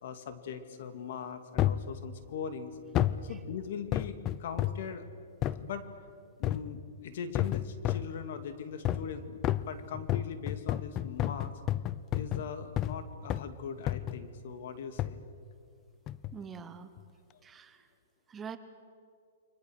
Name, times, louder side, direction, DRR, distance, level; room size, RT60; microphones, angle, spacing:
voice 1, 0.0-2.8 3.2-5.1 5.6-5.9 6.4-9.4 9.7-11.6 12.1-15.2 17.3-17.4, left 7 dB, 60° left, 8 dB, 2.3 m, -40 dB
sound 1, 1.6-1.9 2.9-3.3 3.9-4.9 5.4-5.6 6.4-6.8 7.3-8.1 8.8-9.1 9.4-13.0 13.3-13.5 13.9-14.3 15.0-15.2 16.1-16.4 17.0-17.1, left 12 dB, 25° left, 0.6 m, -31 dB
voice 2, 16.3-16.9 17.4-17.9 18.3-18.6, right 6 dB, 15° right, 10 dB, 1.0 m, -44 dB
29.0 x 24.0 x 6.5 m, 2.3 s
hypercardioid pair, 155°, 0 cm